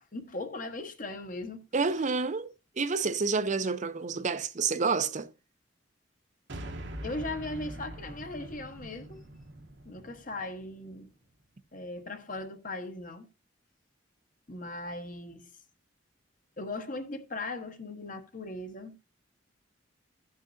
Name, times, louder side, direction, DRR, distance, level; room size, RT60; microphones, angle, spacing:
voice 1, 0.1-1.6 7.0-9.2 9.8-11.1 11.7-13.3 14.5-15.5 16.6-19.0, left 2 dB, 45° left, 1.2 m, -38 dB
voice 2, 1.7-5.3, right 4 dB, 40° right, 0.6 m, -29 dB
sound 1, 6.5-10.9, right 1 dB, 60° right, 1.1 m, -43 dB
16.0 x 6.3 x 2.7 m
head